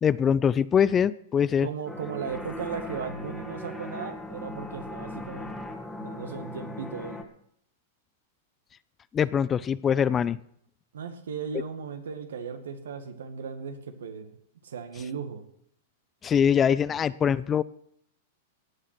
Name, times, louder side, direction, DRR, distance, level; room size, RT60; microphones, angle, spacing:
voice 1, 0.0-1.7 9.1-10.4 16.2-17.6, left 8 dB, 25° left, 19 dB, 0.5 m, -23 dB
voice 2, 1.6-5.7 6.0-7.2 10.9-14.4 14.6-15.4, right 6 dB, 75° right, 8 dB, 2.0 m, -36 dB
sound 1, 1.9-7.2, left 2 dB, 10° left, 1.9 m, -39 dB
17.0 x 8.9 x 6.1 m, 0.68 s
hypercardioid pair, 105°, 0 cm